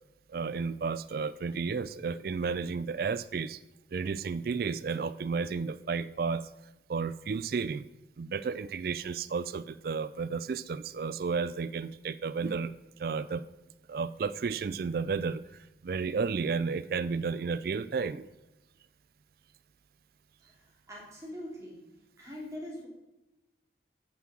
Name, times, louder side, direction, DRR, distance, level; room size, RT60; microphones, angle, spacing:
voice 1, 0.3-3.6 3.9-6.5 6.9-7.8 8.2-12.7 13.0-13.4 13.9-15.4 15.8-18.3, right 5 dB, 55° right, 14 dB, 0.3 m, -32 dB
voice 2, 20.9-21.8 22.2-22.9, left 1 dB, 15° right, -3 dB, 3.0 m, -42 dB
9.5 x 6.0 x 6.1 m, 1.0 s
head